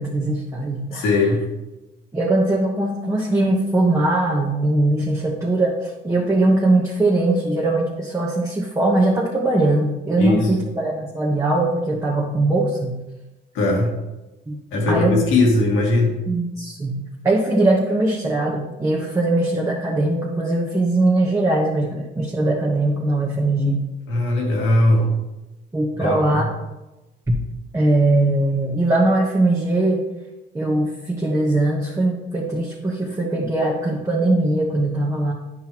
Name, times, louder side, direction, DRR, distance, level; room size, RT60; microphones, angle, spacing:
voice 1, 0.0-1.1 2.1-13.0 14.5-14.6 14.9-15.2 16.3-23.8 25.7-26.4 27.7-30.0 30.5-35.3, right 2 dB, 15° right, -3 dB, 1.1 m, -20 dB
voice 2, 0.9-1.4 10.2-10.5 13.5-13.9 14.7-16.1 24.1-25.2 26.0-26.5, left 2 dB, 85° left, 0 dB, 1.7 m, -19 dB
9.5 x 5.6 x 3.0 m, 1.0 s
cardioid pair, 90°, 20 cm